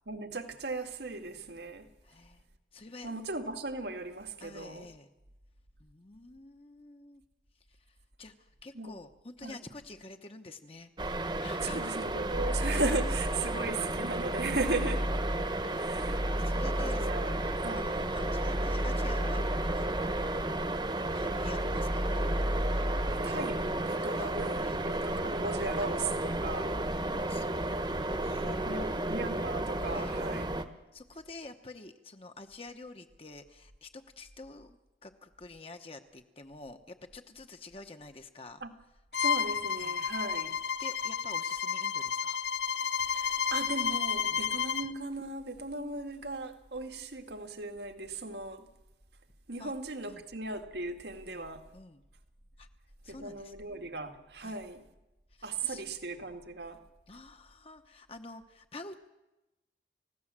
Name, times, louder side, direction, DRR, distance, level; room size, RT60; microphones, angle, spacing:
voice 1, 0.1-1.9 3.0-4.9 8.8-9.0 9.4-9.6 11.6-15.1 15.8-16.2 16.8-18.0 23.1-26.8 28.6-30.5 38.6-38.7 39.2-40.6 43.1-48.7 49.5-51.6 53.1-54.8 55.4-56.8, right 3 dB, 75° right, 1.9 m, -37 dB
voice 2, 2.0-2.4 2.7-3.1 4.4-5.1 5.8-7.2 7.7-10.9 11.4-11.9 15.6-15.9 16.4-20.6 20.9-22.2 24.1-24.3 24.6-24.8 27.3-27.5 28.1-29.0 29.9-30.2 30.9-38.6 39.7-39.9 40.8-42.4 44.3-44.5 49.6-49.7 50.1-50.2 51.2-51.4 51.7-52.0 52.6-52.7 53.0-53.5 54.4-54.6 55.3-55.8 57.1-59.1, left 2 dB, 35° left, 1.0 m, -48 dB
sound 1, 11.0-30.6, right 1 dB, 25° right, 1.1 m, -33 dB
sound 2, 12.3-13.7 14.1-20.7 21.0-23.3, equal, 5° left, 0.7 m, -34 dB
Bowed string instrument, 39.1-44.9, left 7 dB, 80° left, 0.7 m, -31 dB
29.5 x 16.0 x 7.5 m
head